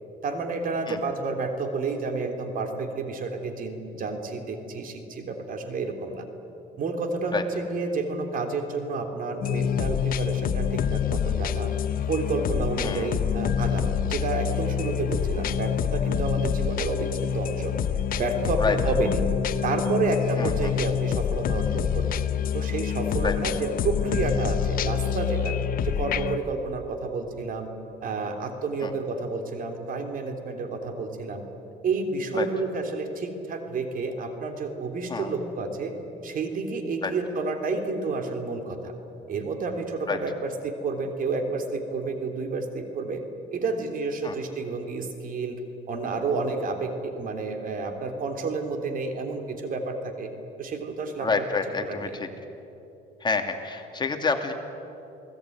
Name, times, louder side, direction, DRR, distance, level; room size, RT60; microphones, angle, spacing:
voice 1, 0.2-6.2 6.8-11.7 12.1-17.7 18.1-19.3 19.6-22.2 22.5-25.6 25.8-27.7 28.0-31.4 31.8-36.0 36.2-38.9 39.3-43.2 43.5-45.6 45.9-50.3 50.6-51.4 51.8-52.1, right 3 dB, 55° right, 5 dB, 3.4 m, -30 dB
sound 1, 9.4-26.4, left 8 dB, 55° left, 1.1 m, -26 dB
voice 2, 51.2-52.3 53.2-54.5, left 4 dB, 25° left, 5 dB, 2.5 m, -27 dB
29.5 x 19.0 x 9.4 m, 3.0 s
cardioid pair, 110°, 17 cm